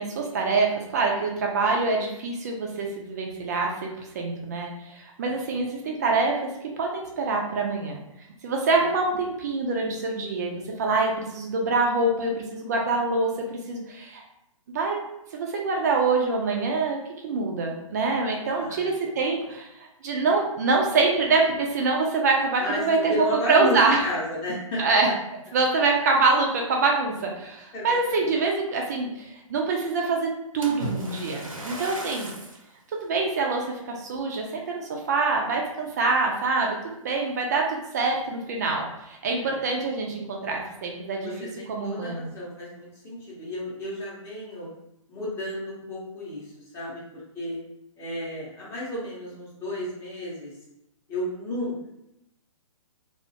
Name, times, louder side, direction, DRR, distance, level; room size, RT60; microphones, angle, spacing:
voice 1, 0.0-6.5 6.8-8.0 8.4-14.2 14.7-15.0 15.3-17.0 17.2-24.0 24.8-25.1 25.5-30.3 30.5-32.3 32.9-36.8 37.0-41.3 41.7-42.3, right 3 dB, 30° right, 0 dB, 0.3 m, -25 dB
voice 2, 5.2-5.6 18.5-19.1 20.1-20.2 22.6-23.8 24.0-24.8 27.7-28.3 39.4-39.7 41.2-44.7 45.1-47.6 48.0-50.5 51.1-51.9, left 1 dB, 15° left, -6 dB, 0.7 m, -33 dB
Splash splatter, 30.6-32.7 33.3-33.5 34.1-34.2, right 2 dB, 85° right, 0.6 m, -36 dB
2.3 x 2.1 x 2.7 m, 0.86 s
figure-of-eight pair, 125°, 17 cm